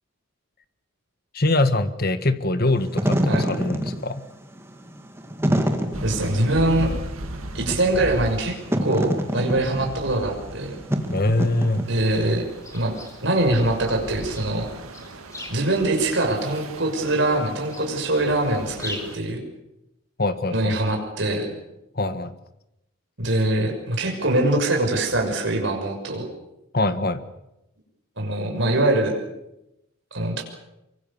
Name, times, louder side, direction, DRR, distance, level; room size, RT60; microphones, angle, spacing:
voice 1, 1.3-4.2 11.1-11.8 20.2-20.7 21.9-22.3 26.7-27.2, left 2 dB, 45° left, 11 dB, 1.5 m, -23 dB
Wind / Fire, 2.7-12.3, equal, 10° right, 2.1 m, -27 dB
sound 1, 5.9-19.2, right 1 dB, 85° right, 2.2 m, -38 dB
voice 2, 6.0-6.9 7.5-8.6 8.8-10.8 11.9-12.5 12.7-12.9 13.2-14.7 15.5-19.4 20.5-21.5 23.2-26.3 28.2-29.1 30.1-30.4, right 1 dB, 55° right, 2 dB, 6.2 m, -23 dB
sound 2, 11.8-19.1, left 1 dB, 15° left, 3.7 m, -43 dB
25.0 x 24.5 x 7.2 m, 0.89 s
head